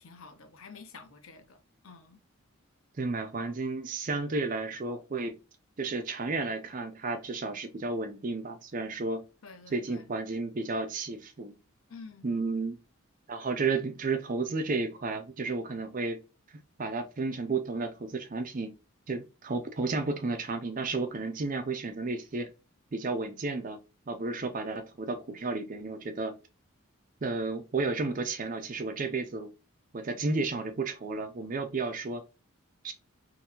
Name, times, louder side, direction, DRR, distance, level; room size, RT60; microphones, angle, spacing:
voice 1, 0.0-2.2 9.4-10.0 11.9-12.3, left 4 dB, 75° left, 0.7 m, -49 dB
voice 2, 3.0-5.4 5.8-9.2 9.7-11.5 12.2-12.8 13.3-16.2 16.8-18.7 19.1-22.5 22.9-23.8 24.1-26.3 27.2-29.5 29.9-32.2 32.8-32.9, right 3 dB, 40° right, 0.5 m, -32 dB
3.8 x 2.6 x 2.8 m
head